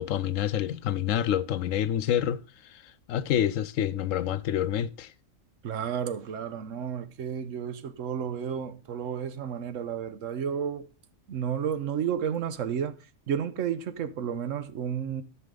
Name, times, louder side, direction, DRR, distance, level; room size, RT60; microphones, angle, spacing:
voice 1, 0.0-2.4 3.1-5.1, left 10 dB, 90° left, 1.0 m, -27 dB
voice 2, 5.6-10.9 11.3-13.0 13.3-15.2, right 8 dB, 85° right, 1.2 m, -32 dB
13.5 x 5.9 x 3.8 m
omnidirectional pair, 1.3 m